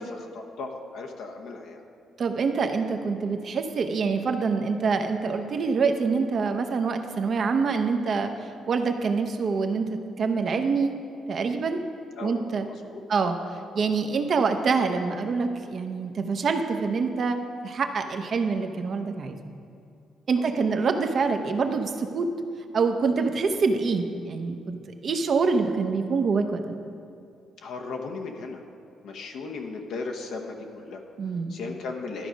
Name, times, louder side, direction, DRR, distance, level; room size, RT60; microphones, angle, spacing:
voice 1, 0.0-1.8 12.2-13.0 20.3-20.7 27.6-28.6 29.0-31.0 31.5-32.3, left 3 dB, 75° left, 2 dB, 1.0 m, -37 dB
voice 2, 2.2-8.3 8.7-10.9 11.3-11.8 12.2-12.7 13.1-13.4 13.7-17.4 17.6-19.4 20.3-22.3 22.7-26.6 31.2-31.5, right 4 dB, 50° right, 6 dB, 0.7 m, -25 dB
12.5 x 4.9 x 5.1 m, 2.5 s
cardioid pair, 90°, 0 cm